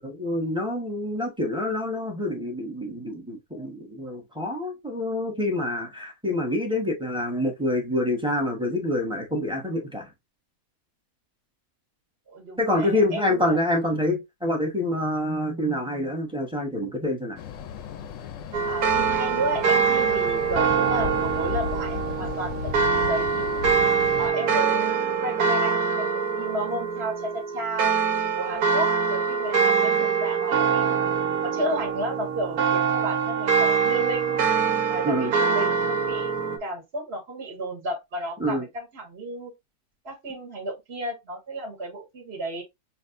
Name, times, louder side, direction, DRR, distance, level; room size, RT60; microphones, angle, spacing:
voice 1, 0.0-10.1 12.6-17.4 35.0-35.3 38.4-38.6, left 1 dB, 5° right, 0.9 m, -27 dB
voice 2, 12.3-13.6 18.7-23.6 24.2-27.9 28.4-31.0 31.4-34.4 34.9-36.3 36.6-39.5 40.0-42.6, right 1 dB, 45° right, 1.5 m, -33 dB
sound 1, 17.4-24.3, left 7 dB, 70° left, 0.8 m, -35 dB
sound 2, 18.5-36.6, right 6 dB, 85° right, 1.4 m, -24 dB
5.6 x 2.5 x 2.5 m
omnidirectional pair, 1.6 m